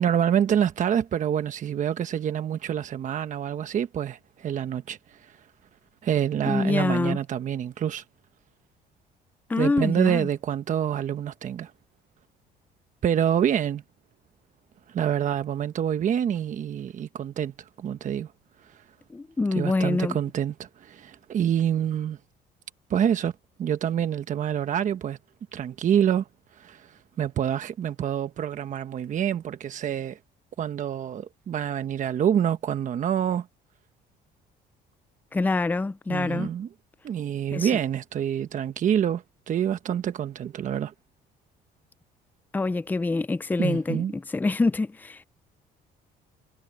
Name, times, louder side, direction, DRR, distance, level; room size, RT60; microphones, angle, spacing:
voice 1, 0.0-5.3 6.0-8.0 9.6-11.7 13.0-13.8 14.9-17.5 17.8-18.3 19.5-22.2 22.9-23.3 23.6-25.2 25.5-26.3 26.6-30.2 30.6-33.5 36.1-36.7 37.0-40.9 43.6-44.1, right 9 dB, 50° right, 1.1 m, -27 dB
voice 2, 6.5-7.2 9.5-10.3 19.1-20.2 35.3-36.5 37.5-37.7 42.5-45.2, left 3 dB, 10° left, 0.4 m, -26 dB
cardioid pair, 110°, 17 cm